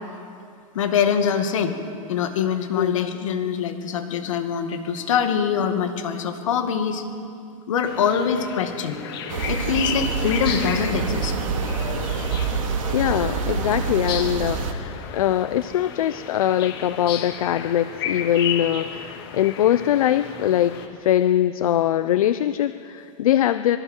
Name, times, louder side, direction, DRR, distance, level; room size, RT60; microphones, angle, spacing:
voice 1, 0.7-1.8 2.1-7.0 7.7-9.0 9.5-11.3, left 7 dB, 65° left, 6 dB, 2.2 m, -24 dB
voice 2, 2.7-3.2 12.9-20.7 21.0-23.8, left 11 dB, 85° left, 12 dB, 0.6 m, -22 dB
sound 1, 7.8-20.9, left 8 dB, 45° left, 1.8 m, -33 dB
sound 2, 9.3-14.7, right 5 dB, 70° right, 2.2 m, -26 dB
24.5 x 24.0 x 4.6 m, 2.5 s
supercardioid pair, 175°, 18 cm